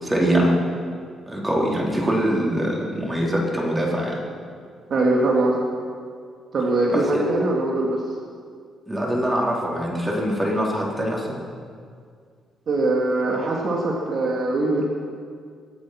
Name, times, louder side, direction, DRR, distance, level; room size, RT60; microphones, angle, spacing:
voice 1, 0.0-0.5 1.3-4.2 6.9-7.2 8.9-11.4, equal, 15° right, -3 dB, 4.1 m, -23 dB
voice 2, 4.9-5.6 6.5-8.0 12.7-14.8, right 2 dB, 55° right, -2 dB, 2.4 m, -22 dB
24.0 x 8.5 x 6.0 m, 2.1 s
cardioid pair, 90°, 0 cm